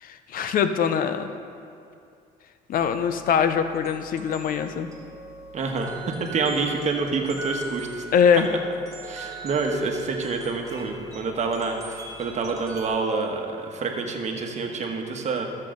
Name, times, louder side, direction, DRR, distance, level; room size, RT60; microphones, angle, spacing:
voice 1, 0.0-1.3 2.7-4.9 8.1-8.5, left 7 dB, 55° left, 9 dB, 0.6 m, -22 dB
sound 1, 2.7-12.9, right 2 dB, 20° right, 1.4 m, -41 dB
voice 2, 5.5-8.0 9.0-15.5, right 4 dB, 45° right, 3 dB, 1.2 m, -27 dB
13.0 x 7.5 x 3.8 m, 2.4 s
cardioid pair, 110°, 17 cm